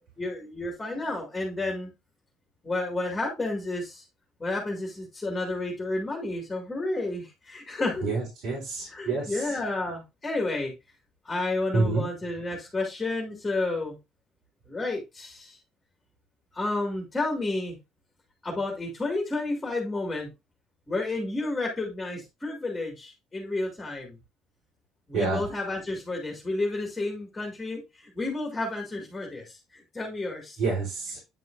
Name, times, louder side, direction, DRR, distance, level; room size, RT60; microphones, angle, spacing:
voice 1, 0.2-1.9 2.6-4.0 4.4-8.1 8.9-10.7 11.2-14.0 14.7-15.6 16.5-17.8 18.4-20.3 20.9-24.2 25.1-30.6, left 2 dB, 10° left, 0 dB, 2.2 m, -31 dB
voice 2, 8.0-9.5 11.7-12.1 25.1-25.4 30.6-31.2, right 3 dB, 70° right, -4 dB, 3.8 m, -28 dB
9.5 x 5.5 x 2.6 m, 0.24 s
cardioid pair, 160°, 0 cm